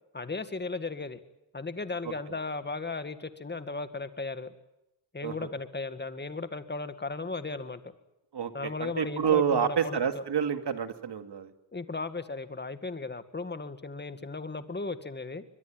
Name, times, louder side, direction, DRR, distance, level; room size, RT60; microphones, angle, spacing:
voice 1, 0.1-1.2 1.5-4.5 5.1-7.8 8.5-10.2 11.7-15.4, left 3 dB, 20° left, 10 dB, 1.9 m, -36 dB
voice 2, 8.3-11.5, right 8 dB, 55° right, 8 dB, 2.4 m, -28 dB
23.5 x 22.0 x 9.1 m, 0.87 s
cardioid pair, 100°, 49 cm